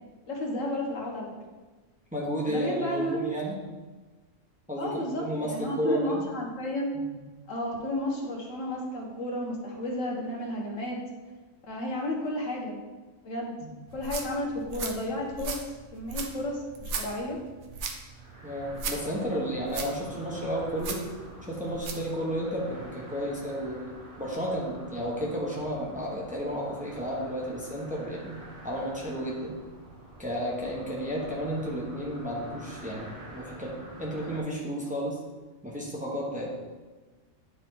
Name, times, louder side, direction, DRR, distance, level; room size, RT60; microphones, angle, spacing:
voice 1, 0.3-1.3 2.4-3.2 4.8-7.0 7.5-11.0 11.7-12.7 13.2-13.6 13.9-15.6 15.9-17.4, left 1 dB, 80° left, -1 dB, 1.6 m, -32 dB
voice 2, 2.1-3.5 4.7-6.2 6.9-7.1 13.6-13.7 18.4-21.0 21.5-23.8 24.2-28.4 28.6-29.5 30.2-35.2 35.6-36.5, equal, 5° right, -4 dB, 1.2 m, -32 dB
sound 1, 13.9-22.1, right 4 dB, 70° right, 1.1 m, -38 dB
sound 2, 18.0-34.4, right 1 dB, 45° right, 1.9 m, -47 dB
9.6 x 4.3 x 3.8 m, 1.3 s
omnidirectional pair, 1.3 m